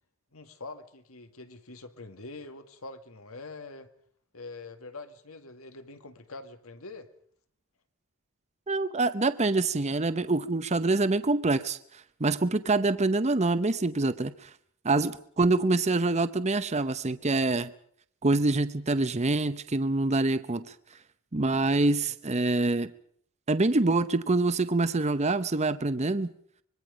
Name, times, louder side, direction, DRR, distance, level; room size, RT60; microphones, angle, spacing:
voice 1, 0.3-3.9 4.3-7.1, left 3 dB, 75° left, 9 dB, 2.1 m, -44 dB
voice 2, 8.7-11.8 12.2-14.5 14.8-17.7 18.2-20.7 21.3-22.9 23.5-26.3, right 2 dB, 30° right, 12 dB, 0.8 m, -25 dB
25.5 x 22.0 x 5.1 m, 0.63 s
head